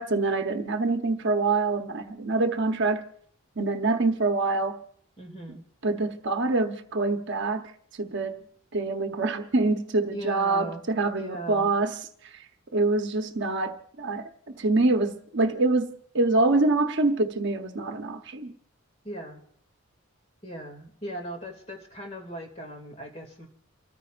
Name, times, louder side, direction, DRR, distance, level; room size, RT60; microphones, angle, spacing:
voice 1, 0.0-3.1 3.6-4.8 5.8-8.4 8.7-12.0 12.2-12.4 12.7-18.5, right 3 dB, 55° right, 0.9 m, -25 dB
voice 2, 5.2-5.6 10.1-10.8 11.2-11.7 19.0-19.4 20.4-23.5, right 1 dB, 30° left, 2.3 m, -38 dB
29.5 x 14.0 x 2.5 m
head